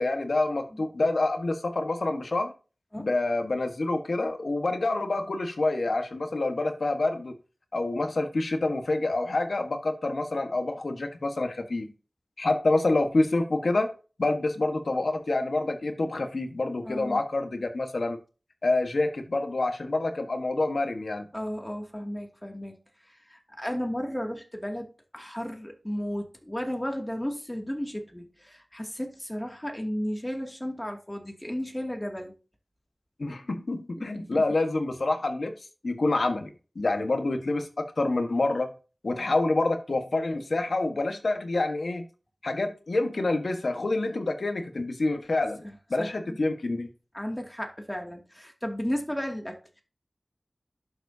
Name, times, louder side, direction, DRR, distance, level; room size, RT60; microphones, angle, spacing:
voice 1, 0.0-2.5 3.0-7.3 7.7-11.9 12.4-13.9 14.2-18.2 18.6-21.3 33.2-35.5 35.8-37.7 38.0-38.7 39.0-42.0 42.4-45.6 45.9-46.9, left 2 dB, 75° left, 1.5 m, -27 dB
voice 2, 16.8-17.2 21.3-22.8 23.0-32.3 34.0-34.4 45.6-46.1 47.1-49.8, equal, 15° left, 2.4 m, -34 dB
11.5 x 7.2 x 2.8 m
wide cardioid pair, 50°, 0 cm